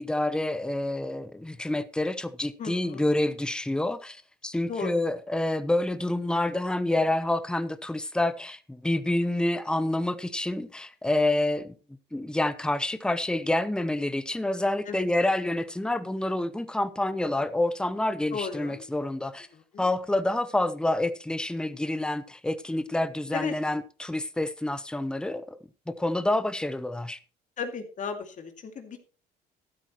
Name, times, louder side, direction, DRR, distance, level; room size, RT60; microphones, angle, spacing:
voice 1, 0.0-11.7 12.1-19.5 19.8-25.6 25.9-27.2, left 1 dB, 5° left, 0.9 m, -28 dB
voice 2, 2.6-3.1 4.7-5.0 14.9-15.1 18.3-18.9 19.5-19.9 23.3-23.5 27.6-29.0, left 5 dB, 45° left, 2.4 m, -35 dB
13.0 x 12.5 x 3.1 m
cardioid pair, 110°, 17 cm